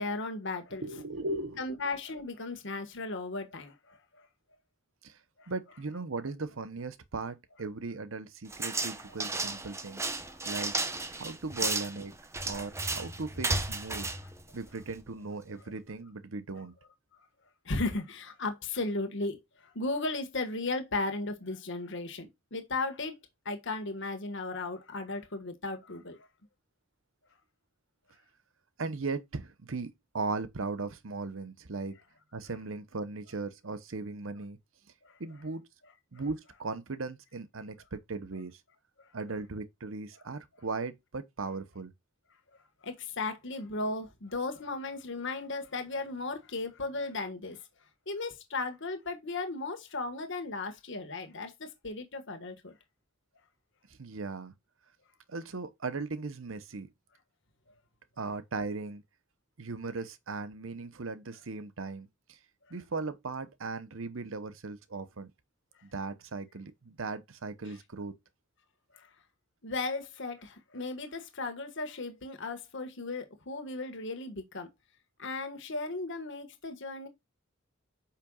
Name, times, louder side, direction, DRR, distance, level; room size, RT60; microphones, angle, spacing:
voice 1, 0.0-0.8 1.6-4.2 5.4-5.5 10.2-10.3 17.6-23.2 23.4-26.2 35.0-35.1 42.8-47.6 48.1-52.8 68.9-69.1 69.6-74.7 75.2-77.1, left 3 dB, 65° left, 1.6 m, -36 dB
voice 2, 0.8-1.6 5.0-5.2 5.5-10.1 10.4-10.7 11.1-12.1 12.5-14.1 14.5-16.7 28.8-32.0 32.3-34.6 35.2-35.7 36.1-38.6 39.1-41.9 53.9-54.5 55.3-56.9 58.2-59.0 59.6-62.4 62.7-65.3 65.8-68.2, right 3 dB, 75° right, 0.9 m, -38 dB
sound 1, 8.5-15.1, right 3 dB, 15° right, 0.8 m, -34 dB
8.6 x 5.7 x 2.4 m
head